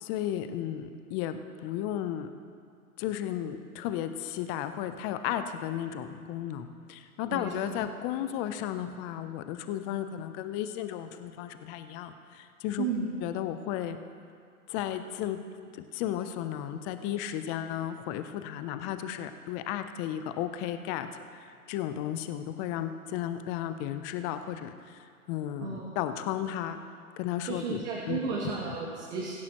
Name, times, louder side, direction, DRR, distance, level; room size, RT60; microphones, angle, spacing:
voice 1, 0.0-2.3 3.0-12.8 13.2-14.0 14.7-15.4 15.7-26.8 27.2-28.2, left 11 dB, 25° left, 9 dB, 0.5 m, -34 dB
voice 2, 7.3-7.7 12.8-13.1 25.6-25.9 27.4-29.3, right 5 dB, 50° right, -4 dB, 2.4 m, -33 dB
22.5 x 10.5 x 3.0 m, 2.3 s
hypercardioid pair, 125°, 44 cm